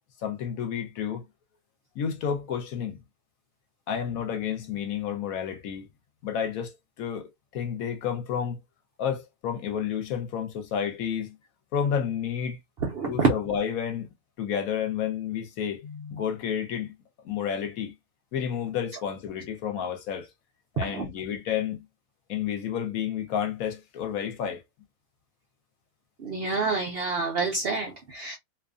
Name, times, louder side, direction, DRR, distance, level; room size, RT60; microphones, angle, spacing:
voice 1, 0.2-1.3 2.0-3.0 3.9-5.9 6.2-7.3 7.5-8.6 9.0-11.4 11.7-12.6 13.1-14.1 14.4-16.9 17.2-17.9 18.3-20.3 20.8-21.8 22.3-24.6, left 8 dB, 70° left, 1.1 m, -30 dB
voice 2, 12.8-13.3 20.8-21.1 26.2-28.4, right 4 dB, 65° right, 0.6 m, -27 dB
2.6 x 2.4 x 2.4 m
omnidirectional pair, 1.7 m